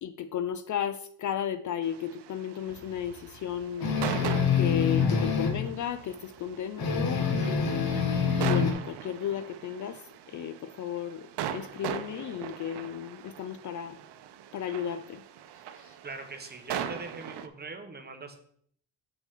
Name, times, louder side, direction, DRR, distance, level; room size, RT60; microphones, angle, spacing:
voice 1, 0.0-10.0 10.3-14.0 14.5-15.2 15.7-16.0, left 9 dB, 50° left, 12 dB, 0.4 m, -34 dB
sound 1, 1.8-17.5, right 10 dB, 85° right, 0.7 m, -40 dB
sound 2, 3.8-5.6 6.8-8.7, left 6 dB, 65° left, 1.3 m, -26 dB
voice 2, 16.0-18.4, right 3 dB, 25° right, 5 dB, 1.1 m, -41 dB
7.0 x 6.0 x 3.7 m, 0.62 s
cardioid pair, 120°, 40 cm